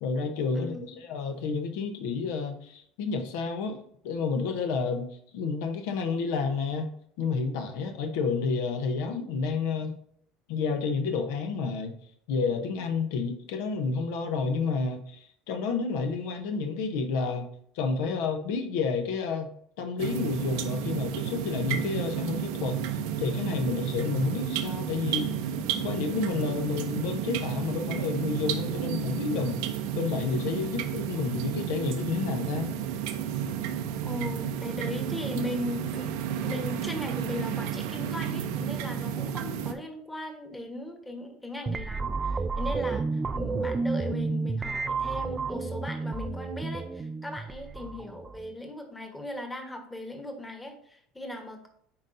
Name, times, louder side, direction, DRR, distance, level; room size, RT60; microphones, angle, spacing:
voice 1, 0.0-3.8 4.0-5.1 5.3-6.9 7.2-9.9 10.5-11.9 12.3-15.2 15.5-17.5 17.7-19.5 19.8-22.8 23.2-29.6 29.9-32.7, left 4 dB, 80° left, 6 dB, 0.8 m, -30 dB
voice 2, 0.5-1.0 34.0-51.7, left 1 dB, 10° left, 4 dB, 1.2 m, -38 dB
sound 1, 20.0-39.7, right 9 dB, 80° right, 0.6 m, -32 dB
sound 2, 41.7-48.5, right 4 dB, 20° right, 0.3 m, -31 dB
9.4 x 4.0 x 2.6 m, 0.65 s
supercardioid pair, 115°, 0 cm